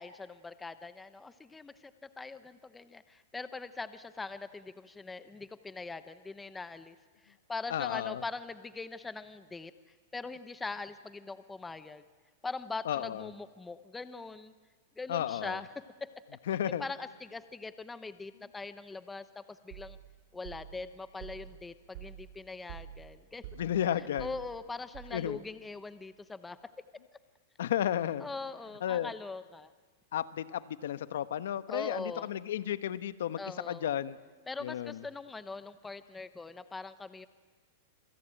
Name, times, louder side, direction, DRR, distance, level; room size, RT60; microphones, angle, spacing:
voice 1, 0.0-1.7 2.0-7.0 7.2-9.7 10.1-12.0 12.4-14.5 15.0-15.7 16.0-16.1 16.8-20.0 20.3-23.4 24.2-26.6 28.2-29.7 31.7-32.3 33.4-33.9 34.5-37.3, left 3 dB, 10° left, 12 dB, 0.8 m, -42 dB
voice 2, 7.7-8.2 12.8-13.3 15.1-15.6 16.5-16.8 23.6-24.3 25.1-25.4 27.6-28.3 28.8-29.1 30.1-33.4 33.6-34.2 34.6-35.0, left 11 dB, 75° left, 13 dB, 1.2 m, -33 dB
sound 1, 19.7-25.5, right 10 dB, 55° right, 4.3 m, -49 dB
27.0 x 24.0 x 9.1 m, 1.4 s
supercardioid pair, 150°, 0 cm